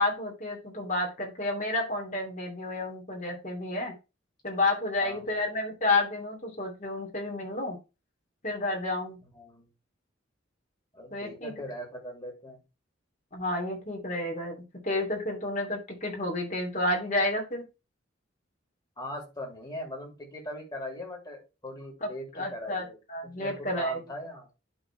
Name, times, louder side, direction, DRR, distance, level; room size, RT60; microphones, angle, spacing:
voice 1, 0.0-3.9 4.4-7.8 8.4-9.2 11.1-11.5 13.3-17.6 22.0-22.1 22.3-24.0, left 2 dB, 40° left, 0 dB, 3.0 m, -30 dB
voice 2, 5.0-5.4 9.2-9.7 10.9-12.6 19.0-23.0 23.4-24.5, left 1 dB, 20° left, 0 dB, 3.1 m, -40 dB
11.5 x 4.1 x 3.3 m, 0.27 s
head